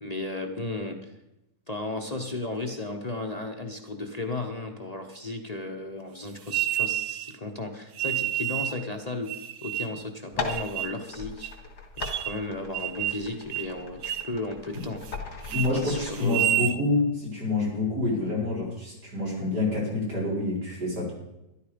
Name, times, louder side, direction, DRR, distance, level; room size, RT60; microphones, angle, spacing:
voice 1, 0.0-1.1 1.7-11.5 12.0-15.1 15.7-16.4, left 2 dB, 30° left, 3 dB, 0.9 m, -34 dB
sound 1, 6.5-7.3 8.0-8.8 9.3-10.0 10.5-11.0 11.4-11.5 12.0-12.4 12.7-13.3 13.5-13.7 14.0-14.3 14.7-15.2 15.4-15.7 16.2-16.8, right 13 dB, 70° right, 1.1 m, -29 dB
sound 2, 10.2-16.1, left 4 dB, 80° left, 2.6 m, -38 dB
voice 2, 15.5-21.1, left 2 dB, 90° right, -5 dB, 5.4 m, -27 dB
13.0 x 12.0 x 5.1 m, 0.92 s
omnidirectional pair, 1.7 m